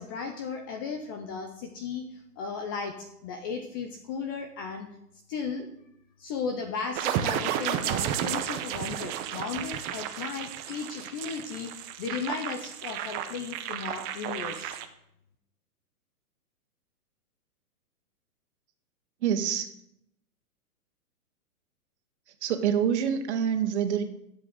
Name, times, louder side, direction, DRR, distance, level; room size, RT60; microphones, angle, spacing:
voice 1, 0.0-2.1 2.4-4.9 5.3-5.7 6.2-14.8, left 5 dB, 15° left, 6 dB, 0.5 m, -35 dB
sound 1, 7.0-14.9, right 10 dB, 20° right, 0.8 m, -32 dB
voice 2, 19.2-19.7 22.4-24.0, right 8 dB, 50° right, 8 dB, 2.0 m, -26 dB
13.0 x 7.8 x 8.0 m, 0.78 s
hypercardioid pair, 150°, 45 cm